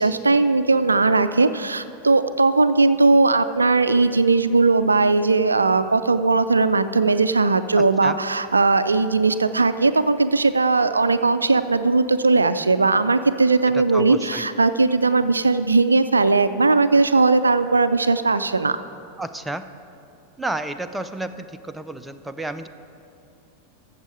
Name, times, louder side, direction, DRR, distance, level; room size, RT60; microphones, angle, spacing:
voice 1, 0.0-18.8, right 3 dB, 80° right, 12 dB, 0.3 m, -18 dB
voice 2, 7.8-8.2 13.7-14.4 19.2-19.6 20.4-22.7, right 2 dB, 5° right, 9 dB, 0.4 m, -31 dB
13.5 x 7.3 x 4.8 m, 2.7 s
figure-of-eight pair, 90°, 0 cm